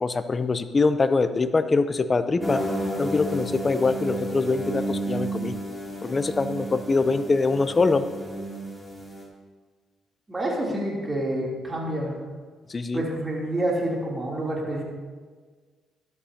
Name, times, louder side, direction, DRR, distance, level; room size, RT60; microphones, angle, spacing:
voice 1, 0.0-2.6 3.0-5.5 6.0-8.1 12.7-13.0, left 3 dB, 30° left, 11 dB, 0.6 m, -23 dB
sound 1, 2.4-9.2, right 1 dB, 5° left, 2.9 m, -32 dB
voice 2, 10.3-12.1 12.9-14.8, right 1 dB, 20° right, -4 dB, 3.2 m, -28 dB
13.5 x 11.5 x 2.9 m, 1.5 s
cardioid pair, 90°, 0 cm